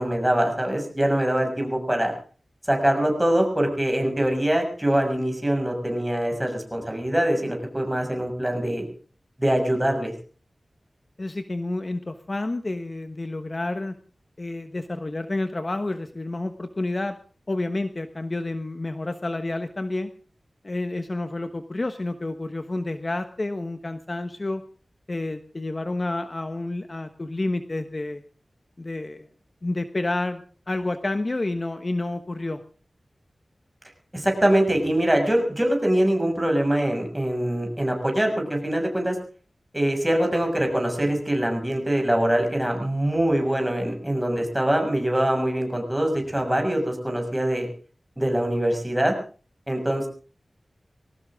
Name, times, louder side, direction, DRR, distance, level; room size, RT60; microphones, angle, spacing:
voice 1, 0.0-2.1 2.7-8.8 9.4-10.1 34.1-39.2 39.7-47.7 48.2-49.1 49.7-50.1, right 1 dB, 10° right, 3 dB, 6.5 m, -23 dB
voice 2, 11.2-13.9 14.4-17.2 17.5-20.1 20.6-24.6 25.1-28.2 28.8-29.3 29.6-30.4 30.7-32.6, left 2 dB, 40° left, 8 dB, 1.3 m, -29 dB
21.0 x 18.0 x 3.7 m, 0.39 s
wide cardioid pair, 80°, 0 cm